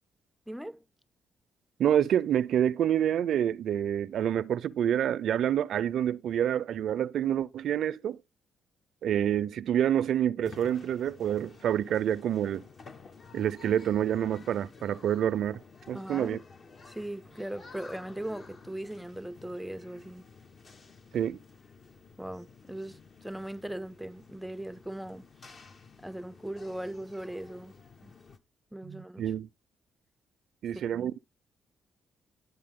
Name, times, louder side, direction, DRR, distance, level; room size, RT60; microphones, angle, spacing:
voice 1, 0.5-0.8 15.9-16.4 16.9-20.3 22.2-25.3 26.0-27.7 28.0-28.1 28.7-29.2 30.9-31.1, right 1 dB, 5° right, 0.5 m, -39 dB
voice 2, 1.8-8.2 9.0-12.7 13.3-15.6 15.9-16.4 21.1-21.4 28.8-29.5 30.6-31.2, right 10 dB, 70° right, 0.5 m, -27 dB
sound 1, 10.4-28.4, left 4 dB, 45° left, 1.2 m, -52 dB
11.0 x 8.1 x 3.6 m
cardioid pair, 90°, 0 cm